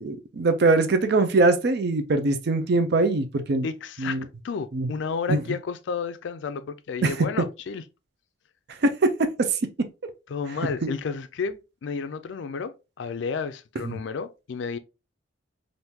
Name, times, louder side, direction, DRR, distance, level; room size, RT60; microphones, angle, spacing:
voice 1, 0.0-3.7 4.0-4.2 4.7-4.9 5.3-5.4 7.0-7.1 8.8-9.9 10.6-10.7 13.8-14.0, right 3 dB, 55° right, 0.5 m, -22 dB
voice 2, 3.6-4.2 4.4-7.8 10.3-14.8, left 5 dB, 65° left, 0.4 m, -32 dB
3.5 x 2.6 x 2.7 m
head